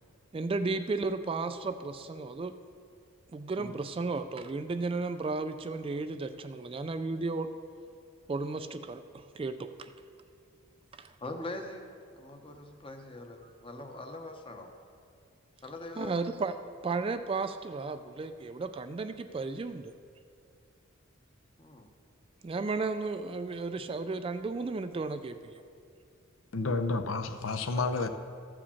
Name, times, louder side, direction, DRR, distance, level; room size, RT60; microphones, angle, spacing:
voice 1, 0.3-2.5 3.3-7.5 8.3-9.9 11.0-11.1 16.0-16.6 16.8-19.9 22.4-25.6, right 3 dB, 25° right, 9 dB, 0.3 m, -34 dB
voice 2, 11.2-11.9 12.1-14.7 15.6-16.1 21.6-21.9 27.7-27.9, left 2 dB, 25° left, 4 dB, 0.9 m, -42 dB
voice 3, 26.5-28.1, left 3 dB, 65° left, 8 dB, 0.6 m, -30 dB
14.0 x 5.0 x 7.0 m, 2.3 s
head